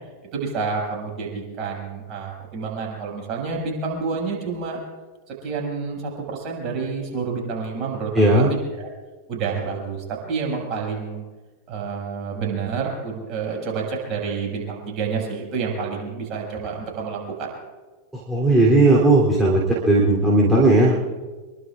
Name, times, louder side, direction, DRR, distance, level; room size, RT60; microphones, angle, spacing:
voice 1, 0.3-4.8 5.3-8.9 9.3-11.2 11.7-17.5, right 5 dB, 35° right, -1 dB, 6.3 m, -29 dB
voice 2, 8.1-8.5 18.3-21.1, right 2 dB, 10° right, -6 dB, 3.3 m, -16 dB
25.5 x 22.5 x 2.5 m, 1.3 s
figure-of-eight pair, 90°, 0 cm